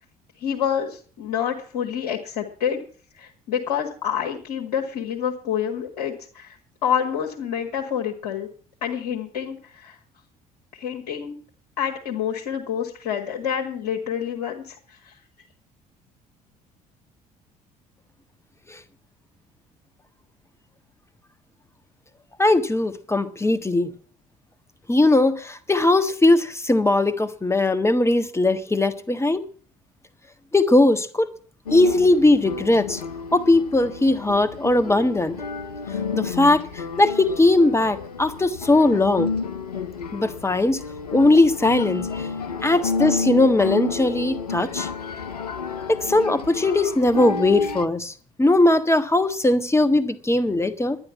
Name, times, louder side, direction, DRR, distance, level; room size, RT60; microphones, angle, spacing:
voice 1, 0.4-2.8 3.2-6.6 6.8-8.5 8.8-10.0 10.7-11.4 11.8-15.2, left 8 dB, 70° left, 1.7 m, -27 dB
voice 2, 22.4-23.9 24.9-29.4 30.5-31.3 31.7-33.0 33.3-35.4 36.1-39.3 40.1-40.8 41.1-42.3 42.6-44.9 45.9-48.1 48.4-51.0, left 2 dB, 15° left, 1.5 m, -19 dB
sound 1, 31.7-47.9, left 5 dB, 85° left, 0.6 m, -31 dB
11.5 x 9.9 x 7.2 m
figure-of-eight pair, 50°, 19 cm